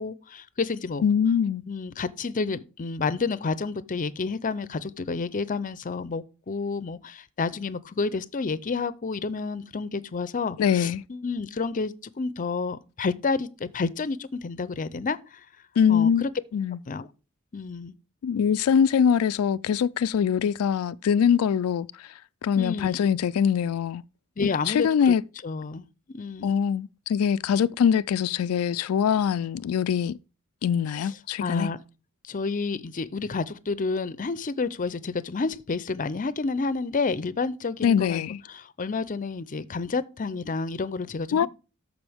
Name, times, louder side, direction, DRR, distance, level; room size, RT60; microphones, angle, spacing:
voice 1, 0.0-1.0 1.7-15.4 15.9-16.3 16.9-17.1 17.5-17.9 22.6-23.0 24.4-25.1 25.4-25.9 26.1-26.6 31.0-31.1 31.4-31.8 32.3-38.2 38.5-41.5, left 4 dB, 40° left, 0.5 m, -30 dB
voice 2, 1.0-1.6 10.6-11.0 15.8-16.2 16.5-16.8 18.2-22.1 22.4-24.0 24.7-25.2 26.4-30.2 30.6-31.7 37.8-38.4 41.3-41.5, left 7 dB, 90° left, 0.3 m, -23 dB
13.0 x 5.1 x 3.5 m
head